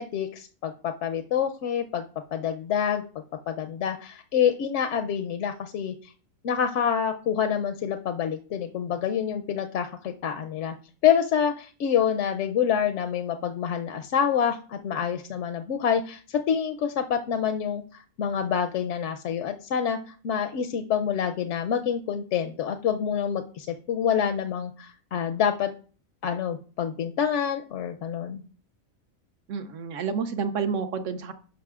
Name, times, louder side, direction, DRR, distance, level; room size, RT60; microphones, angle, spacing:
voice 1, 0.0-2.0 2.3-3.0 3.5-6.1 6.4-10.7 11.0-17.8 18.2-20.0 20.2-25.7 26.2-28.4, left 8 dB, 70° left, 6 dB, 0.8 m, -27 dB
voice 2, 29.5-31.3, right 6 dB, 70° right, 9 dB, 0.9 m, -29 dB
11.0 x 5.6 x 2.4 m, 0.40 s
omnidirectional pair, 1.4 m